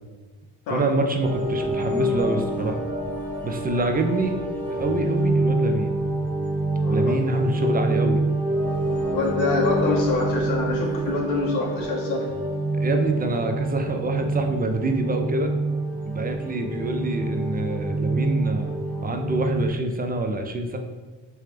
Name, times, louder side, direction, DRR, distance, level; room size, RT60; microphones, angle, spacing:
voice 1, 0.7-2.8 3.4-4.4 4.7-6.0 6.9-8.2 12.7-15.5 16.0-18.7 19.0-20.8, right 2 dB, 20° right, 5 dB, 0.4 m, -26 dB
sound 1, 1.2-19.7, right 2 dB, 5° left, 0.9 m, -26 dB
voice 2, 6.8-7.1 9.0-12.3, left 3 dB, 75° left, -2 dB, 1.0 m, -26 dB
3.4 x 2.8 x 3.3 m, 1.3 s
supercardioid pair, 70°, 47 cm